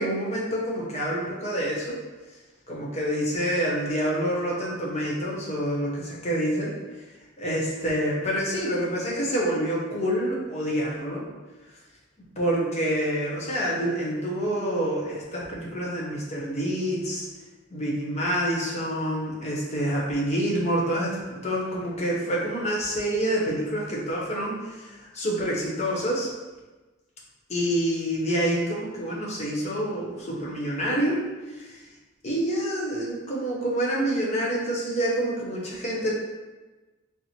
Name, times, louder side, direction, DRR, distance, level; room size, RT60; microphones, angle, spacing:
voice 1, 0.0-2.0 2.7-6.7 7.4-11.2 12.4-17.3 17.7-26.3 27.5-31.2 31.5-31.8 32.2-36.1, equal, 35° left, -4 dB, 0.8 m, -27 dB
4.2 x 2.0 x 4.3 m, 1.2 s
head